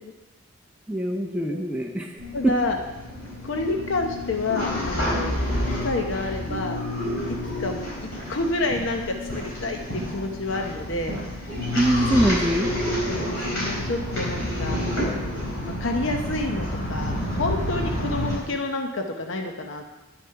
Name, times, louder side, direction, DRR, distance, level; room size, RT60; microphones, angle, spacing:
voice 1, 0.9-2.5 11.7-12.7, right 1 dB, 5° right, 0 dB, 0.6 m, -23 dB
sound 1, 2.2-18.3, left 1 dB, 80° left, 4.0 m, -29 dB
voice 2, 2.3-2.8 3.4-5.4 5.7-6.8 7.2-11.2 13.0-19.9, left 2 dB, 65° left, 4 dB, 0.8 m, -29 dB
10.0 x 6.4 x 5.8 m, 1.1 s
head